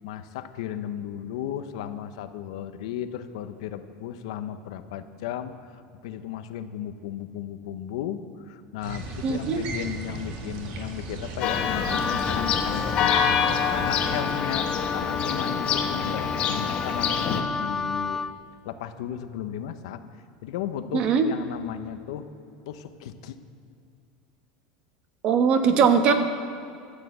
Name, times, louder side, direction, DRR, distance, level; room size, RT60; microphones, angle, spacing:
voice 1, 0.0-13.4 13.7-18.2 18.6-20.0 20.4-22.3 22.7-23.4, left 10 dB, 75° left, 10 dB, 0.9 m, -35 dB
sound 1, 8.8-14.2, right 2 dB, 50° right, 1.9 m, -36 dB
voice 2, 9.2-9.6 20.9-21.2 25.2-26.1, right 6 dB, 35° right, 7 dB, 1.1 m, -20 dB
Church bell, 11.4-17.4, left 7 dB, 40° left, 1.1 m, -26 dB
Wind instrument woodwind instrument, 11.9-18.3, left 4 dB, 10° left, 0.4 m, -31 dB
13.5 x 8.3 x 8.1 m, 2.4 s
supercardioid pair, 155°, 3 cm